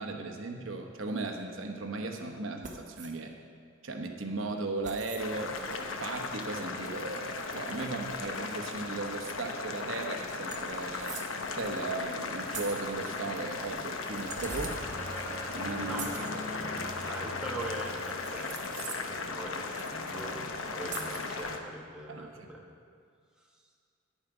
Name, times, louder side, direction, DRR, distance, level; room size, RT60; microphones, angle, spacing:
voice 1, 0.0-3.3 3.8-11.2 11.5-14.8 15.5-16.1 22.1-22.5, right 3 dB, 70° right, 4 dB, 0.9 m, -37 dB
sound 1, 2.6-3.1 4.8-5.3 7.3-7.4 9.6-9.7 9.9-10.1 10.5-11.4 12.5-12.9 14.0-14.8 15.9-16.3 18.0-19.2 19.7-20.2 20.9-21.3, right 6 dB, 40° right, 1.0 m, -43 dB
Boiling, 5.2-21.6, left 4 dB, 80° left, 0.9 m, -37 dB
sound 2, 13.8-18.3, left 1 dB, 15° left, 1.5 m, -42 dB
voice 2, 15.9-19.6 19.9-22.6, right 1 dB, 5° right, -2 dB, 1.2 m, -42 dB
11.5 x 9.2 x 4.9 m, 2.2 s
head